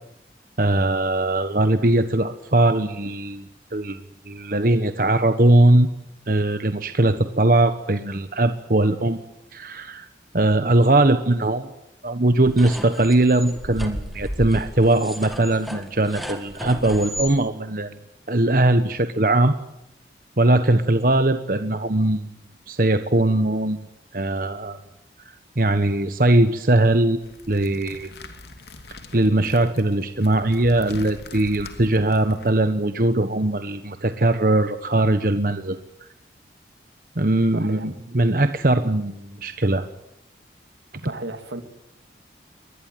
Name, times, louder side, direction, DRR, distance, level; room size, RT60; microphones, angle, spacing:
voice 1, 0.6-3.4 3.7-4.0 4.3-5.9 6.3-9.2 9.5-10.1 10.3-11.7 12.0-18.0 18.3-19.5 20.4-22.3 22.7-23.9 24.1-24.8 25.6-27.2 27.5-28.1 29.1-35.8 37.2-39.9, right 2 dB, 50° right, 1.2 m, -20 dB
sound 1, 12.4-17.3, equal, ahead, 2.3 m, -34 dB
sound 2, 27.2-32.5, left 2 dB, 70° left, 2.8 m, -42 dB
voice 2, 37.5-37.9 41.0-41.6, right 2 dB, 85° right, 2.6 m, -33 dB
23.5 x 20.0 x 9.2 m
head